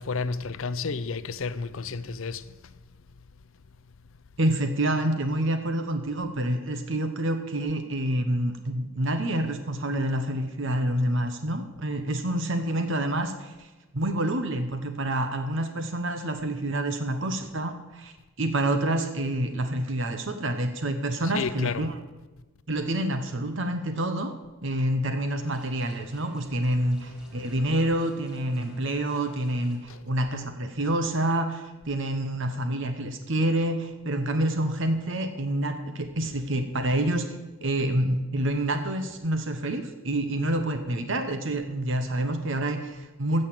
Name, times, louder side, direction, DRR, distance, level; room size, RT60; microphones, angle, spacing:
voice 1, 0.0-2.7 21.2-21.8 29.9-30.0, left 4 dB, 65° left, 0.6 m, -31 dB
voice 2, 4.4-13.7 13.9-22.0 22.7-24.3 24.6-43.5, right 1 dB, 60° right, 1.0 m, -27 dB
sound 1, 25.4-29.8, right 1 dB, 5° right, 2.0 m, -52 dB
15.5 x 6.5 x 7.6 m
head